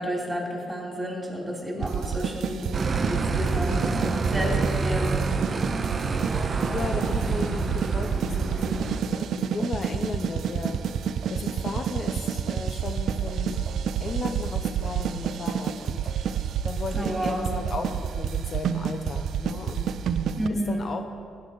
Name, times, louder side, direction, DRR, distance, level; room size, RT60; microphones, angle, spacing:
voice 1, 0.0-2.6 3.1-4.5 4.8-5.2 5.5-5.7 16.9-17.5 20.4-20.9, equal, 10° right, -2 dB, 3.4 m, -31 dB
sound 1, 1.8-20.5, right 7 dB, 70° right, 0.5 m, -29 dB
sound 2, 2.7-9.0, right 3 dB, 35° right, 0.9 m, -28 dB
voice 2, 6.4-10.8 11.3-13.6 14.0-16.1 16.6-19.8 20.5-21.0, left 4 dB, 45° left, 5 dB, 0.7 m, -35 dB
15.5 x 9.7 x 4.1 m, 2.3 s
cardioid pair, 90°, 0 cm